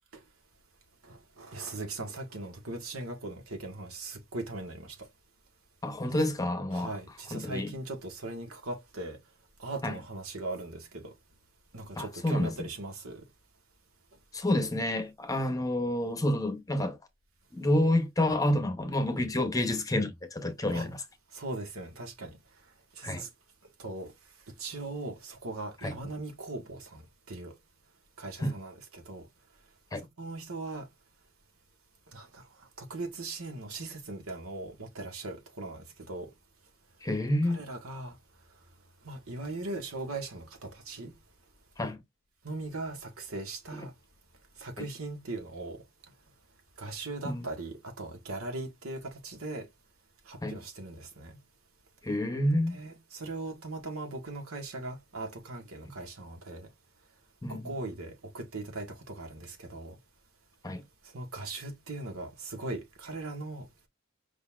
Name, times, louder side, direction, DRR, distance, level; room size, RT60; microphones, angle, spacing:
voice 1, 1.0-5.1 6.2-6.3 6.7-9.2 9.6-11.1 11.7-13.2 20.7-20.9 21.3-22.4 22.9-23.3 23.8-24.1 24.6-27.0 27.3-27.5 28.2-29.3 30.2-30.9 32.1-32.4 32.8-36.3 37.4-38.2 39.0-41.1 42.4-43.9 44.6-45.8 46.8-49.7 50.2-51.4 52.7-56.7 57.5-60.0 61.1-63.7, right 2 dB, 90° right, 1.6 m, -39 dB
voice 2, 5.8-6.9 7.3-7.7 9.8-9.9 12.0-12.7 14.3-17.0 17.5-21.0 23.0-23.3 25.8-25.9 28.4-28.5 29.9-30.0 37.0-37.6 41.8-42.0 47.2-47.4 50.4-50.6 52.0-52.8 57.4-57.7 60.6-60.8, left 1 dB, 15° left, 0.8 m, -29 dB
5.2 x 3.9 x 2.4 m
head